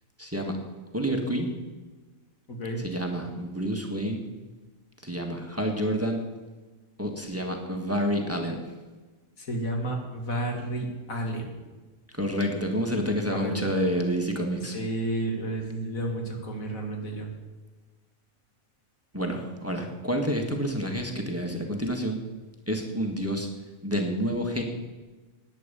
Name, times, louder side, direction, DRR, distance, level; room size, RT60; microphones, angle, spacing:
voice 1, 0.2-0.6 0.9-1.5 2.8-4.2 5.0-6.2 7.0-8.6 12.1-14.8 19.1-22.2 22.7-23.5 23.8-24.6, equal, 10° right, 2 dB, 1.5 m, -28 dB
voice 2, 2.5-2.8 9.5-11.5 13.3-13.7 14.7-17.3, right 1 dB, 85° left, 2 dB, 2.5 m, -31 dB
11.0 x 9.5 x 6.8 m, 1.3 s
omnidirectional pair, 1.4 m